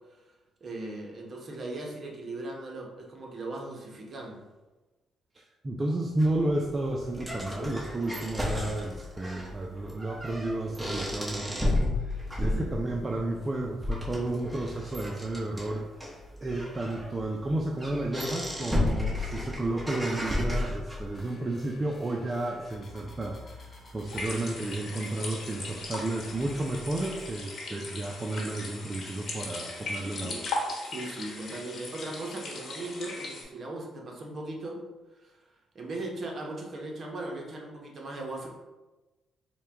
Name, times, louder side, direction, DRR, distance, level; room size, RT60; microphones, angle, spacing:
voice 1, 0.6-4.4 12.4-12.7 30.8-34.8 35.2-35.4 35.7-38.5, right 2 dB, 45° right, 0 dB, 0.9 m, -38 dB
voice 2, 5.3-15.8 16.4-30.5, right 2 dB, 25° right, 0 dB, 0.4 m, -32 dB
sound 1, 6.2-21.2, left 1 dB, 5° right, 1.2 m, -33 dB
sound 2, 21.1-27.3, left 1 dB, 35° left, 0.7 m, -49 dB
sound 3, 24.1-33.4, left 2 dB, 55° left, 1.1 m, -38 dB
4.4 x 2.2 x 3.4 m, 1.1 s
cardioid pair, 90°, 0 cm